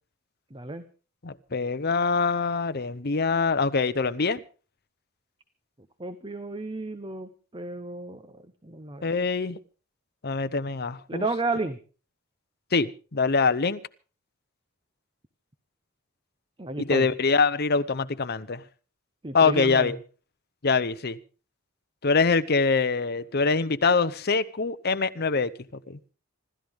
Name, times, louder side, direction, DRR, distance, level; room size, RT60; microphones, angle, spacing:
voice 1, 0.5-0.8 6.0-9.2 11.1-11.8 16.6-17.1 19.2-19.9, right 2 dB, 20° right, 0.8 m, -32 dB
voice 2, 1.2-4.4 9.0-9.6 10.2-11.2 12.7-13.8 16.8-18.6 19.3-20.0 20.6-21.2 22.0-25.5 25.9-26.0, left 4 dB, 45° left, 0.8 m, -24 dB
26.5 x 13.5 x 3.6 m
head